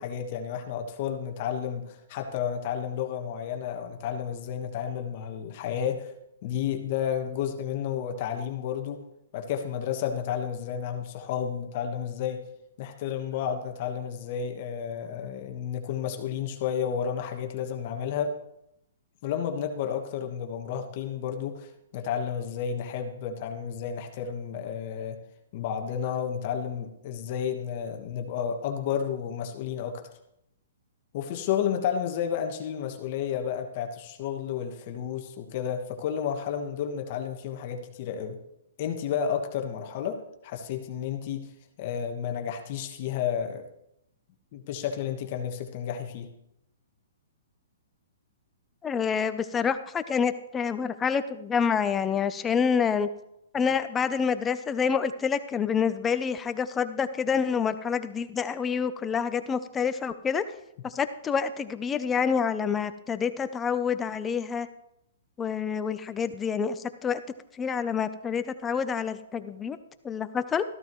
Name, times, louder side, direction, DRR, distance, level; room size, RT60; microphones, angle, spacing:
voice 1, 0.0-6.1 6.4-9.0 9.3-12.4 12.8-18.4 19.2-25.2 25.5-30.0 31.1-38.4 38.8-41.5 41.8-43.6 44.5-46.3, left 8 dB, 40° left, 4 dB, 1.4 m, -31 dB
voice 2, 48.8-53.1 53.5-60.4 60.8-64.7 65.4-67.2 67.6-69.8 70.0-70.6, left 6 dB, 15° left, 11 dB, 0.6 m, -27 dB
14.0 x 13.0 x 3.1 m, 0.82 s
hypercardioid pair, 150°, 0 cm